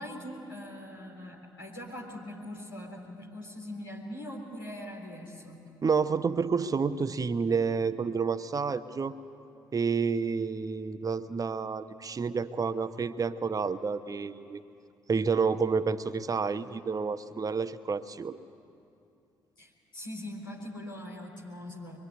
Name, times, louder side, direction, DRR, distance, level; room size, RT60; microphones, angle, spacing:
voice 1, 0.0-5.7 19.6-22.0, left 1 dB, 80° left, -2 dB, 3.7 m, -42 dB
voice 2, 5.8-9.1 9.7-14.6 15.1-18.4, right 5 dB, 30° right, 11 dB, 1.0 m, -29 dB
24.0 x 24.0 x 9.8 m, 2.5 s
figure-of-eight pair, 45°, 11 cm